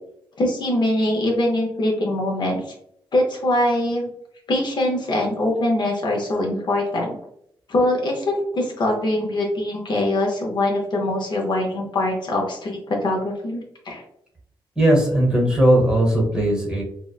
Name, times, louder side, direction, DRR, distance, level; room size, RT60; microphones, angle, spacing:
voice 1, 0.4-2.6 3.1-4.1 4.5-7.2 7.7-14.0, left 1 dB, 55° left, -1 dB, 0.6 m, -23 dB
voice 2, 14.8-16.8, right 1 dB, 10° right, -2 dB, 0.9 m, -18 dB
2.8 x 2.0 x 2.3 m, 0.72 s
wide cardioid pair, 115°, 9 cm